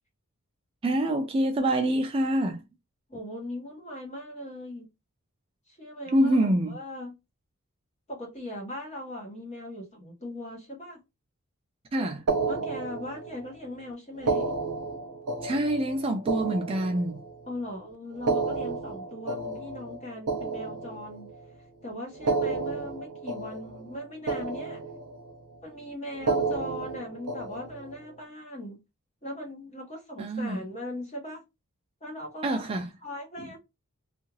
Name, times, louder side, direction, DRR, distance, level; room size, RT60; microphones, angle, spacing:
voice 1, 0.8-2.6 6.1-6.8 11.9-12.2 15.4-17.2 30.2-30.6 32.4-32.9 33.4-33.5, right 1 dB, 25° right, 0.3 m, -26 dB
voice 2, 3.1-4.9 5.7-7.1 8.1-11.0 12.0-12.1 12.4-14.5 17.5-21.3 21.8-24.8 25.6-28.8 29.2-31.4 32.0-32.7 33.0-33.6, left 1 dB, 30° left, 1.3 m, -39 dB
sound 1, 12.3-13.5 14.2-17.5 18.1-21.4 22.1-24.0 24.3-25.3 26.1-28.0, right 3 dB, 90° right, 0.6 m, -31 dB
2.7 x 2.4 x 3.0 m
head